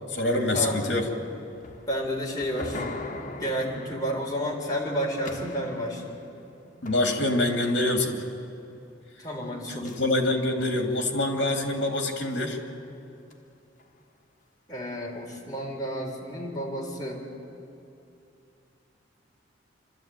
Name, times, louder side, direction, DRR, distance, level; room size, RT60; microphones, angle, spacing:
voice 1, 0.1-1.1 6.8-8.2 9.7-12.6, left 2 dB, 65° left, 4 dB, 2.7 m, -25 dB
sound 1, 1.0-7.9 9.8-10.9 11.5-11.7 12.2-12.3 13.3-13.4 13.8-13.9, left 2 dB, 45° left, 1.5 m, -42 dB
voice 2, 1.9-2.8 3.3-6.2 9.2-9.9 14.7-17.2, equal, 20° left, -3 dB, 3.8 m, -31 dB
28.0 x 13.0 x 9.2 m, 2.7 s
head